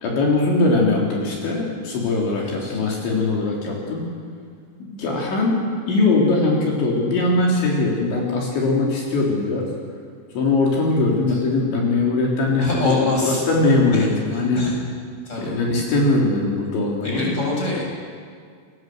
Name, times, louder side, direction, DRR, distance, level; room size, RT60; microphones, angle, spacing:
voice 1, 0.0-4.1 4.9-9.7 10.4-14.7 15.4-17.4, left 2 dB, 65° left, -2 dB, 5.7 m, -21 dB
voice 2, 2.4-2.8 11.0-11.1 12.6-13.4 14.5-14.8 15.3-15.6 17.0-17.8, left 2 dB, 15° left, -2 dB, 7.1 m, -24 dB
29.5 x 21.5 x 7.9 m, 2.1 s
omnidirectional pair, 5.7 m